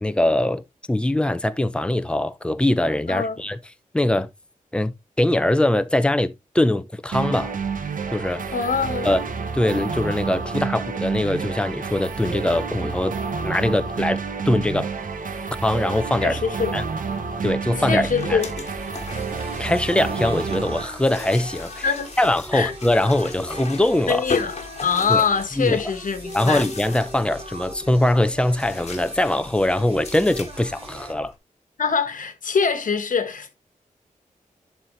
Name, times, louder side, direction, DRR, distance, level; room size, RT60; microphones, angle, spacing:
voice 1, 0.0-0.6 0.9-3.6 3.9-4.3 4.7-7.5 8.1-8.5 9.0-9.2 9.5-13.2 13.4-14.2 14.5-14.9 15.6-16.4 16.7-16.8 17.4-18.4 19.4-21.9 22.2-24.2 25.1-25.2 25.6-25.8 26.3-31.3, left 1 dB, 5° left, 0.7 m, -22 dB
voice 2, 3.1-3.4 8.5-9.2 16.2-16.7 17.8-18.5 21.8-22.1 22.5-22.7 24.1-24.5 24.8-26.6 31.8-33.5, left 6 dB, 75° left, 1.3 m, -23 dB
sound 1, 7.1-20.8, right 5 dB, 75° right, 1.1 m, -29 dB
Singing, 14.9-31.1, equal, 45° right, 2.8 m, -41 dB
sound 2, 17.6-31.4, left 4 dB, 50° left, 1.5 m, -38 dB
11.0 x 4.3 x 3.1 m
wide cardioid pair, 145°, 14 cm